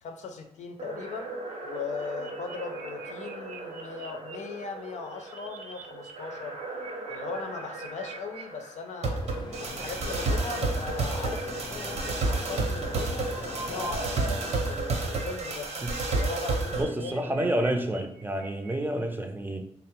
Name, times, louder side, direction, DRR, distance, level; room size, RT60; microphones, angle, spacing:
voice 1, 0.0-1.3 1.6-6.6 7.1-9.2 9.6-13.3 13.6-14.2 14.7-15.7 16.1-17.4, left 5 dB, 90° left, 5 dB, 0.5 m, -39 dB
sound 1, 0.8-16.8, right 2 dB, 70° right, 0.8 m, -32 dB
sound 2, 1.8-4.3 4.8-6.1 6.4-8.4 9.1-12.1 12.9-14.3 14.6-19.0, right 3 dB, 85° right, 0.4 m, -44 dB
sound 3, 9.2-14.8, left 2 dB, 40° left, 0.6 m, -42 dB
voice 2, 16.8-19.6, right 1 dB, 15° right, 5 dB, 0.4 m, -29 dB
3.6 x 2.0 x 4.3 m, 0.78 s
cardioid pair, 95°, 12 cm